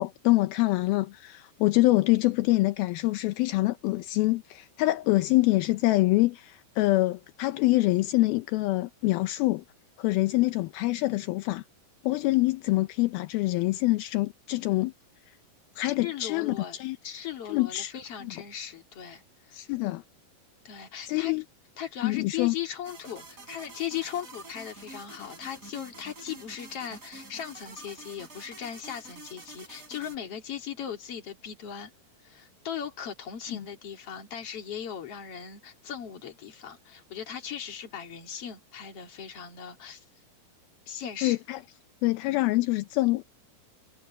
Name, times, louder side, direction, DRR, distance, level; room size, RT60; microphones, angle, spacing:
voice 1, 0.0-9.6 10.0-11.6 12.0-14.9 15.8-17.0 17.5-17.9 18.2-18.3 19.5-20.0 21.1-21.4 22.0-22.5 41.2-41.6 42.0-43.2, left 19 dB, 80° left, 2.6 m, -25 dB
voice 2, 15.8-16.8 17.0-19.6 20.7-21.3 21.8-31.9 32.2-40.0 40.9-41.4, left 9 dB, 40° left, 3.3 m, -38 dB
sound 1, 22.8-30.2, right 3 dB, 20° right, 3.9 m, -47 dB
omnidirectional pair, 4.4 m